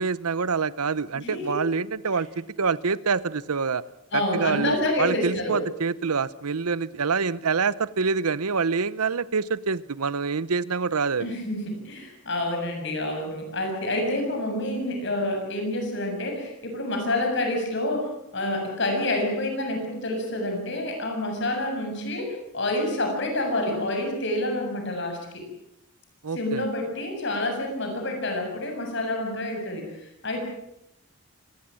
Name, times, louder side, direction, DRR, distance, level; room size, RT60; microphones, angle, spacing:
voice 1, 0.0-3.8 4.1-11.3 26.2-26.6, right 5 dB, 85° right, 18 dB, 0.8 m, -26 dB
voice 2, 1.1-1.6 4.1-5.6 11.2-25.4 26.3-30.4, left 1 dB, 55° left, 4 dB, 7.0 m, -28 dB
25.0 x 19.0 x 7.7 m, 0.79 s
head